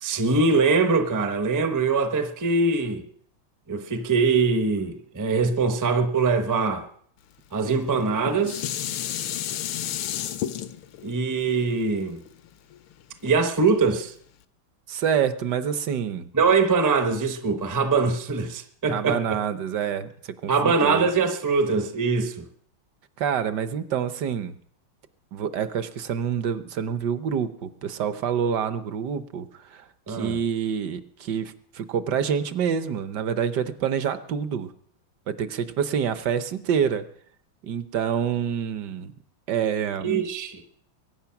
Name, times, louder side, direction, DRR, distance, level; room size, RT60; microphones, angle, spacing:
voice 1, 0.0-3.0 3.7-6.9 7.5-8.6 11.0-12.2 13.2-14.1 16.3-19.4 20.5-22.5 30.1-30.4 40.0-40.6, right 4 dB, 20° right, 0.5 m, -23 dB
Dishes pots and pans, 7.9-13.1 13.7-13.8, left 11 dB, 85° left, 1.7 m, -32 dB
voice 2, 14.9-16.3 18.9-20.1 20.4-21.1 23.2-24.5 25.3-34.7 35.3-37.1 37.6-39.1 39.5-40.1, right 8 dB, 65° right, 1.3 m, -27 dB
22.5 x 9.2 x 5.9 m
omnidirectional pair, 2.3 m